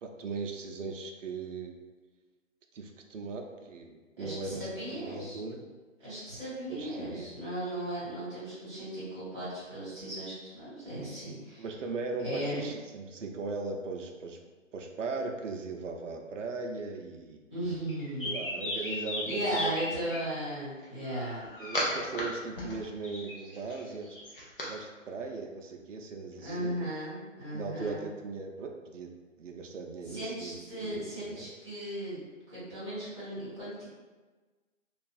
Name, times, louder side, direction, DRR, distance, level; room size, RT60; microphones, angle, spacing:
voice 1, 0.0-1.8 2.7-5.7 6.0-6.2 6.7-7.3 11.6-14.4 14.7-17.4 18.2-19.7 21.6-24.2 24.7-26.8 27.5-29.1 29.4-31.5, right 4 dB, 65° right, 3 dB, 0.5 m, -38 dB
voice 2, 4.2-5.4 6.0-11.6 12.2-12.7 17.5-18.4 18.8-18.9 19.2-21.4 26.4-28.0 30.0-33.8, right 1 dB, 20° right, -12 dB, 1.0 m, -36 dB
sound 1, 17.9-20.2 21.0-22.2 22.5-24.7, left 1 dB, 45° left, 0.5 m, -35 dB
2.6 x 2.3 x 2.3 m, 1.3 s
hypercardioid pair, 170°, 40 cm